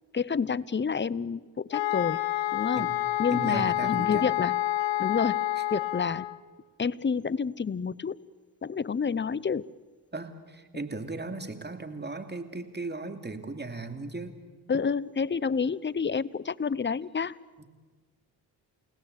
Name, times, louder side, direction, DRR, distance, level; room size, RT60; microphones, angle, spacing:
voice 1, 0.1-2.2 2.5-2.9 3.2-4.6 5.0-5.4 5.7-6.3 6.8-8.2 8.6-9.7 14.7-17.4, left 5 dB, 25° left, 21 dB, 0.8 m, -29 dB
sound 1, 1.7-6.4, left 14 dB, 75° left, 1.3 m, -28 dB
voice 2, 3.3-4.3 5.6-5.7 10.1-14.4 17.6-17.7, right 3 dB, 20° right, 7 dB, 2.8 m, -37 dB
29.5 x 17.5 x 8.3 m, 1.4 s
supercardioid pair, 50°, 45 cm